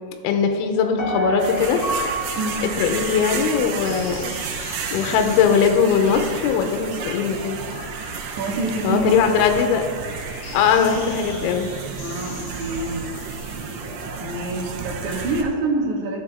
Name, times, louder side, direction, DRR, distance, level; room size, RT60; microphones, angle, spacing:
voice 1, 0.2-1.8 2.8-4.3 4.6-7.6 8.8-9.8 10.5-11.7, left 6 dB, 85° left, 5 dB, 3.1 m, -20 dB
sound 1, 0.8-15.4, left 3 dB, 55° left, 2.7 m, -41 dB
Piano, 1.0-4.1 4.5-4.6, right 1 dB, 70° left, 1.0 m, -29 dB
sound 2, 1.4-15.4, right 6 dB, 80° right, 3.0 m, -32 dB
voice 2, 8.4-9.4 12.0-13.0 14.2-16.2, right 2 dB, 65° right, -1 dB, 2.0 m, -26 dB
13.5 x 7.6 x 3.5 m, 2.1 s
omnidirectional pair, 5.5 m